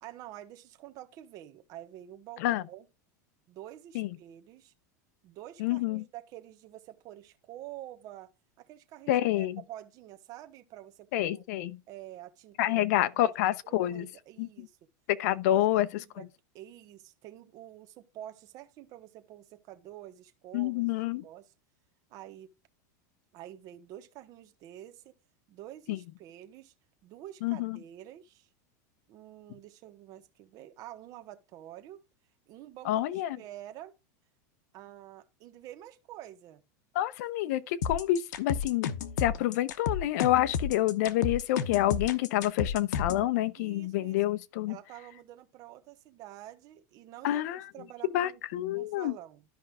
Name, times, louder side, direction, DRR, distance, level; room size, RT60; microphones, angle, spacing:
voice 1, 0.0-2.9 3.5-4.7 5.2-8.3 8.6-11.4 11.9-12.9 13.1-13.3 13.6-14.8 15.3-16.2 16.5-21.5 22.1-22.5 23.3-25.1 25.5-26.7 27.0-28.5 29.1-32.0 32.5-34.0 34.7-36.6 43.5-44.3 44.7-49.4, right 13 dB, 40° right, 1.2 m, -48 dB
voice 2, 5.6-6.0 9.1-9.6 11.1-11.8 12.6-14.1 14.4-14.7 15.1-15.9 16.2-16.3 20.5-21.2 25.9-26.0 27.4-27.8 32.8-33.4 36.9-38.9 39.2-44.8 47.2-47.7 48.1-49.1, left 14 dB, 65° left, 0.7 m, -28 dB
sound 1, 37.8-43.3, left 7 dB, 90° left, 1.0 m, -32 dB
13.0 x 5.4 x 2.4 m
supercardioid pair, 155°, 9 cm